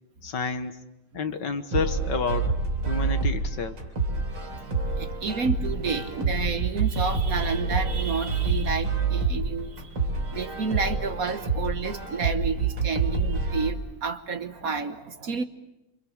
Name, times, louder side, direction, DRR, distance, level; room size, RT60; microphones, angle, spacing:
voice 1, 0.2-0.8 1.1-3.8, left 5 dB, 60° left, 1.8 m, -30 dB
sound 1, 1.7-13.7, right 4 dB, 80° right, 4.5 m, -27 dB
voice 2, 4.2-10.0 10.3-15.4, right 5 dB, 50° right, 1.4 m, -30 dB
27.5 x 27.0 x 7.2 m
omnidirectional pair, 2.3 m